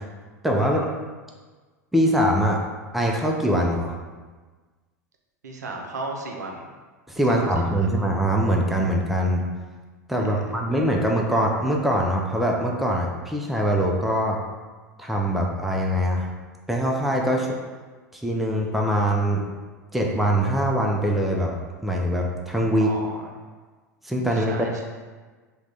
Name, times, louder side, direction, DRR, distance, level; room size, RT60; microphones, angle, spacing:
voice 1, 0.4-0.9 1.9-2.6 2.9-3.9 7.1-9.4 10.1-14.4 15.0-16.3 16.7-17.5 18.1-19.4 19.9-21.5 21.8-22.9 24.0-24.7, equal, ahead, -1 dB, 0.4 m, -23 dB
voice 2, 5.4-6.7 7.3-7.9 10.2-10.4 22.8-23.3 24.3-24.8, right 2 dB, 70° right, 1 dB, 0.5 m, -35 dB
3.6 x 2.2 x 3.2 m, 1.4 s
figure-of-eight pair, 85°, 9 cm